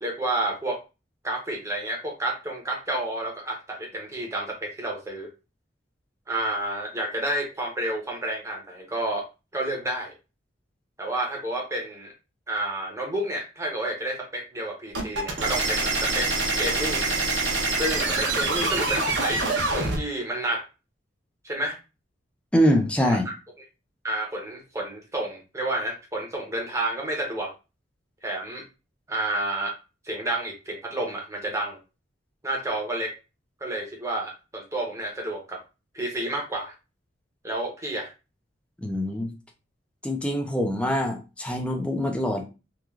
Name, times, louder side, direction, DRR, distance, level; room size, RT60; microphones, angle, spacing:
voice 1, 0.0-0.8 1.2-5.3 6.3-9.3 9.5-10.1 11.0-12.1 12.5-16.3 16.6-17.1 17.8-19.4 19.7-20.6 21.4-21.8 23.0-23.3 24.0-27.5 28.2-28.6 29.1-29.8 30.0-31.8 32.4-33.1 33.6-35.6 35.9-36.7 37.4-38.1, right 1 dB, 15° right, 0 dB, 0.7 m, -30 dB
sound 1, 14.9-20.0, right 3 dB, 75° right, 0.8 m, -25 dB
voice 2, 22.5-23.3 38.8-39.3 40.0-42.4, equal, 5° left, 1 dB, 0.4 m, -24 dB
3.0 x 2.3 x 2.3 m, 0.29 s
head